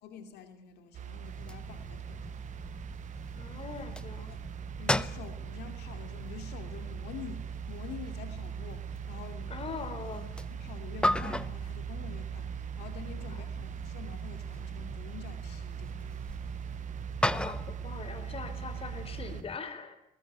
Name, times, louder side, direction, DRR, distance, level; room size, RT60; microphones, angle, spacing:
voice 1, 0.0-2.4 4.2-4.4 4.8-9.7 10.5-16.3, left 8 dB, 80° left, 7 dB, 2.8 m, -47 dB
sound 1, 0.9-19.4, right 9 dB, 45° right, 0.8 m, -41 dB
sound 2, 1.2-19.6, left 1 dB, 5° left, 0.9 m, -38 dB
voice 2, 3.3-4.5 9.5-10.3 13.3-13.7 17.2-20.0, left 5 dB, 35° left, 11 dB, 4.0 m, -42 dB
20.5 x 20.0 x 9.4 m, 0.78 s
cardioid pair, 110°, 17 cm